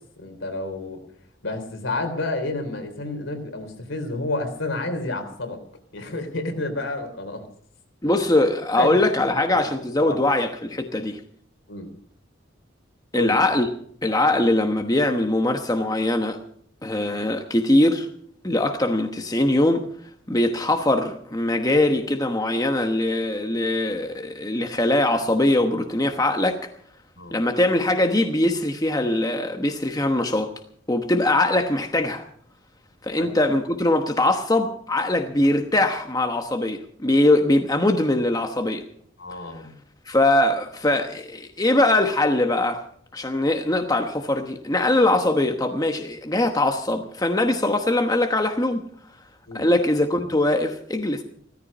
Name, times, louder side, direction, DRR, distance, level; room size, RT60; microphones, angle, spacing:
voice 1, 0.2-1.0 1.4-5.6 5.9-7.4 8.8-9.0 10.0-10.2 11.7-11.9 13.1-13.3 27.1-27.4 33.2-33.3 39.2-39.7 49.5-49.7, left 2 dB, 75° left, 6 dB, 3.5 m, -29 dB
voice 2, 8.0-11.2 13.1-13.7 14.0-16.4 16.8-18.1 18.4-19.8 20.3-26.7 27.3-30.5 30.9-32.2 33.0-38.8 40.1-42.8 43.1-48.8 49.5-51.2, left 1 dB, 20° left, 5 dB, 1.1 m, -22 dB
16.5 x 14.0 x 5.4 m, 0.63 s
head